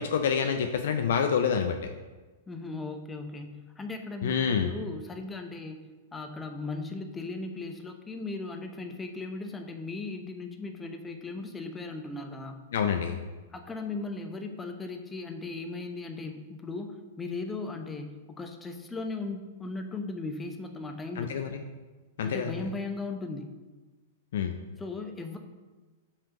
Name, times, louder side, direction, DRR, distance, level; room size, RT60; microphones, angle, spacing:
voice 1, 0.0-1.8 4.2-4.7 12.7-13.2 21.2-21.5 22.2-22.5 24.3-24.6, left 7 dB, 60° left, 6 dB, 0.4 m, -27 dB
voice 2, 2.5-5.9 6.1-12.6 13.5-21.4 22.2-23.5 24.8-25.4, left 3 dB, 15° left, 5 dB, 0.7 m, -37 dB
5.4 x 3.4 x 5.7 m, 1.3 s
figure-of-eight pair, 100°, 0 cm